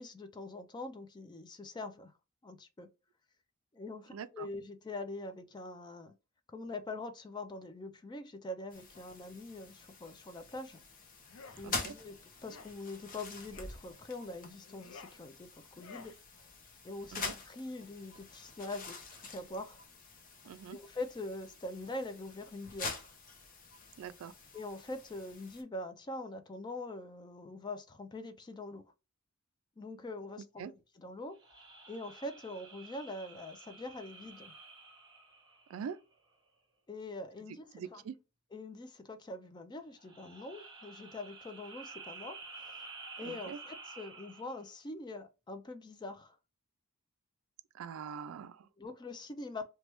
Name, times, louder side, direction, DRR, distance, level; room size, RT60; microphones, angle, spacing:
voice 1, 0.0-2.1 2.4-2.9 3.7-6.1 6.5-10.8 11.6-16.2 16.8-19.8 20.7-23.1 24.5-28.8 29.8-30.6 30.9-31.4 31.9-34.5 36.9-38.0 38.5-42.9 43.2-46.4 48.8-49.6, left 2 dB, 20° left, 0.3 m, -44 dB
voice 2, 4.1-4.5 11.6-11.9 17.1-17.3 20.5-20.8 24.0-24.3 30.6-30.7 35.7-36.0 37.7-38.2 43.2-43.6 47.7-48.7, right 7 dB, 70° right, 0.3 m, -43 dB
sound 1, 8.7-25.6, left 4 dB, 40° left, 0.7 m, -46 dB
sound 2, 11.2-11.6 12.4-12.8 13.5-13.8 14.6-15.2 15.7-16.2, left 5 dB, 75° left, 0.5 m, -52 dB
sound 3, 31.3-36.1 39.9-44.7, right 4 dB, 20° right, 0.8 m, -51 dB
3.1 x 2.2 x 2.9 m
head